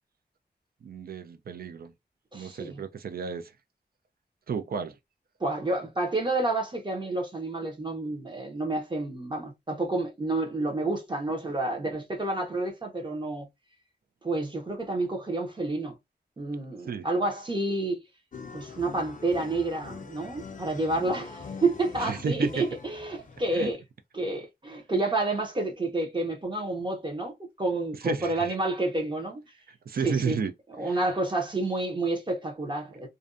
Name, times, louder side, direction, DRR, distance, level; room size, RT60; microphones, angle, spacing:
voice 1, 0.8-1.9 2.3-3.5 4.5-5.0 16.9-17.1 22.0-22.6 23.5-23.7 28.0-28.5 29.7-30.5 30.8-31.0, right 6 dB, 60° right, 0.4 m, -32 dB
voice 2, 2.3-2.8 5.4-13.5 14.2-15.9 16.4-18.0 18.5-23.8 24.1-29.4 30.0-30.4 30.8-33.1, right 2 dB, 25° right, 0.8 m, -29 dB
sound 1, 18.3-23.7, left 5 dB, 50° left, 0.5 m, -43 dB
2.5 x 2.2 x 2.4 m
wide cardioid pair, 120°, 17 cm